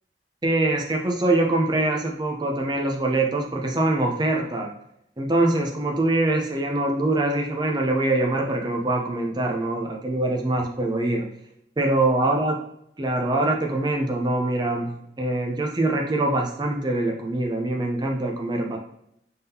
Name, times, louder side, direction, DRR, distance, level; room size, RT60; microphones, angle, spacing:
voice 1, 0.4-4.7 5.2-11.3 11.8-12.6 13.0-14.9 15.2-18.8, right 2 dB, 25° right, 1 dB, 0.6 m, -23 dB
3.7 x 3.5 x 2.8 m, 0.75 s
head